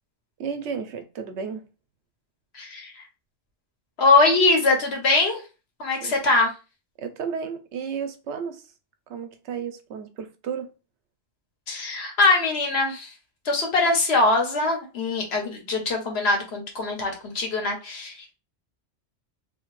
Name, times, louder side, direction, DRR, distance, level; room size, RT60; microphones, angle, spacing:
voice 1, 0.4-1.7 6.0-6.1 7.0-8.7 9.1-10.7, right 6 dB, 85° right, 0.9 m, -33 dB
voice 2, 2.5-3.0 4.0-5.4 5.8-6.5 11.7-13.1 13.4-18.3, left 3 dB, 70° left, 1.1 m, -22 dB
2.8 x 2.7 x 3.0 m
omnidirectional pair, 1.2 m